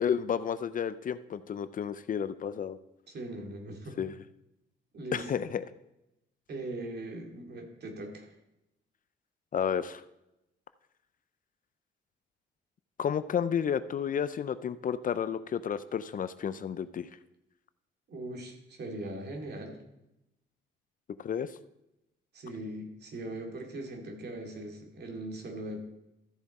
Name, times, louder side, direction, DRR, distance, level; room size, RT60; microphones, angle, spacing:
voice 1, 0.0-2.8 4.0-4.1 5.1-5.6 9.5-10.0 13.0-17.1 21.2-21.5, left 8 dB, 45° left, 14 dB, 0.5 m, -31 dB
voice 2, 3.1-4.0 4.9-5.3 6.5-8.3 18.1-19.8 22.3-25.8, right 1 dB, 55° right, 2 dB, 2.4 m, -40 dB
13.5 x 7.1 x 4.2 m, 0.89 s
cardioid pair, 90°, 20 cm